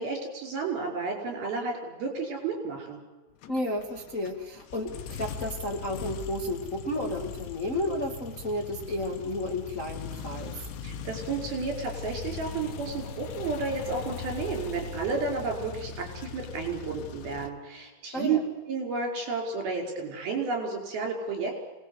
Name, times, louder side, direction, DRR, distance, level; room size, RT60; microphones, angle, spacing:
voice 1, 0.0-3.0 10.8-18.4 18.7-21.5, right 4 dB, 60° right, 2 dB, 7.2 m, -32 dB
sound 1, 3.4-17.5, left 6 dB, 90° left, 3.5 m, -40 dB
voice 2, 3.5-10.7 18.1-18.4, left 1 dB, 25° left, 0 dB, 1.9 m, -32 dB
26.0 x 20.0 x 8.3 m, 1.1 s
omnidirectional pair, 4.9 m